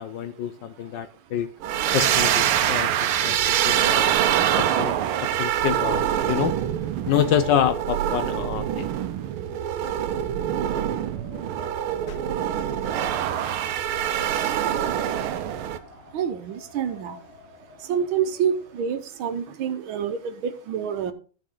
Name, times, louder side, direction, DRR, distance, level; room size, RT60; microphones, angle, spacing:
voice 1, 0.0-1.5 1.9-4.1 4.6-4.9 5.3-6.6 7.1-8.9 12.1-12.2, left 9 dB, 70° left, 11 dB, 1.2 m, -27 dB
sound 1, 1.6-15.8, right 10 dB, 90° right, 1.6 m, -25 dB
Wind, 10.8-19.2, left 3 dB, 45° left, 6.2 m, -48 dB
voice 2, 16.1-17.2 17.9-21.1, right 8 dB, 75° right, 10 dB, 1.6 m, -27 dB
15.0 x 5.3 x 3.7 m, 0.37 s
omnidirectional pair, 2.3 m